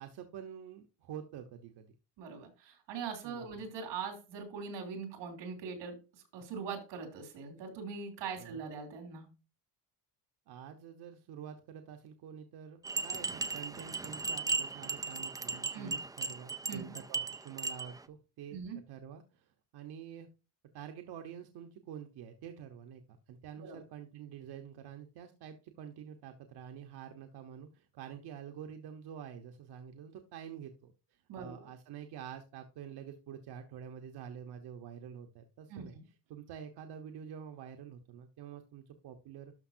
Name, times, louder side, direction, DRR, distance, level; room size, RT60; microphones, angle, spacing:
voice 1, 0.0-1.9 3.2-3.6 8.4-8.7 10.5-18.6 18.9-20.3 20.7-36.0 36.3-39.5, right 8 dB, 60° right, 5 dB, 1.2 m, -48 dB
voice 2, 2.2-9.3 15.7-15.9 16.7-17.0 18.5-18.8 23.6-23.8 31.3-31.7 35.7-36.0, right 5 dB, 85° right, 3 dB, 3.2 m, -42 dB
sound 1, 12.8-18.0, right 4 dB, 10° right, 0.3 m, -37 dB
12.5 x 5.3 x 2.7 m, 0.31 s
cardioid pair, 155°, 43 cm